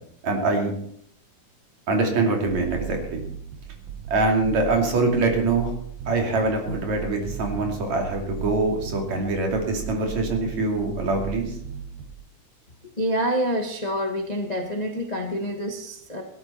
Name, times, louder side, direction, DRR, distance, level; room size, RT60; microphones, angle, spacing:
voice 1, 0.2-0.7 1.9-3.2 4.1-5.7 6.1-11.6, right 3 dB, 65° right, 2 dB, 3.9 m, -24 dB
sound 1, 2.5-12.2, right 9 dB, 80° right, 2.8 m, -36 dB
voice 2, 13.0-16.2, equal, 50° left, 3 dB, 0.4 m, -27 dB
17.0 x 12.5 x 4.4 m, 0.67 s
omnidirectional pair, 3.5 m